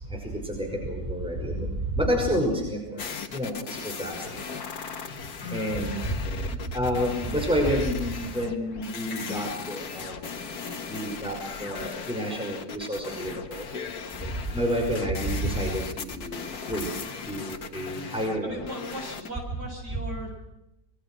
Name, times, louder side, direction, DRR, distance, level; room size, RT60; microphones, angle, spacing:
voice 1, 0.4-1.7 2.0-3.1 3.3-4.2 4.5-4.6 5.5-6.2 6.7-10.1 10.9-13.7 14.5-16.4 16.7-16.9 17.3-18.6, equal, 5° right, 1 dB, 5.7 m, -29 dB
sound 1, 3.0-19.3, left 5 dB, 65° left, 2.1 m, -37 dB
voice 2, 18.4-20.3, right 1 dB, 70° right, 1 dB, 8.3 m, -38 dB
26.0 x 22.5 x 6.3 m, 0.88 s
omnidirectional pair, 1.8 m